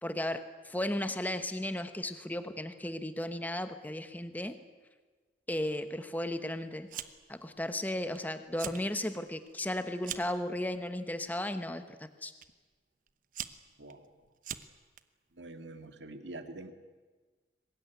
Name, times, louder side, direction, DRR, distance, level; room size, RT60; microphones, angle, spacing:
voice 1, 0.0-4.5 5.5-6.9 7.3-12.3, left 1 dB, 10° left, 10 dB, 1.1 m, -35 dB
Fire, 6.9-7.4 7.7-8.2 8.5-8.8 9.3-10.4 11.2-11.5 12.4-12.5 13.1-15.0, right 9 dB, 45° right, 1.0 m, -42 dB
voice 2, 13.8-14.1 15.3-16.7, right 2 dB, 75° right, 8 dB, 2.0 m, -45 dB
23.0 x 20.0 x 9.5 m, 1.4 s
head